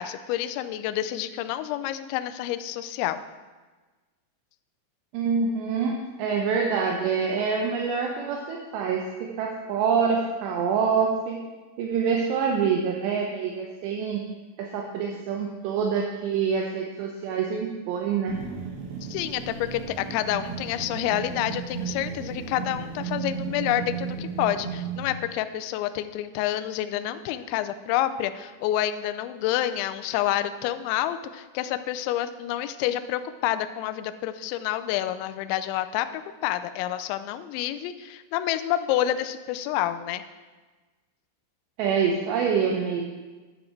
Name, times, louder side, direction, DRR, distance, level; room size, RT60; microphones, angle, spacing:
voice 1, 0.0-3.2 19.1-40.2, left 12 dB, 90° left, 11 dB, 2.6 m, -28 dB
voice 2, 5.1-5.9 6.2-11.4 11.8-14.2 14.6-18.4 41.8-43.0, right 6 dB, 80° right, 1 dB, 2.5 m, -26 dB
sound 1, 18.3-25.0, right 6 dB, 65° right, 2.7 m, -34 dB
10.5 x 8.5 x 4.4 m, 1.3 s
omnidirectional pair, 5.8 m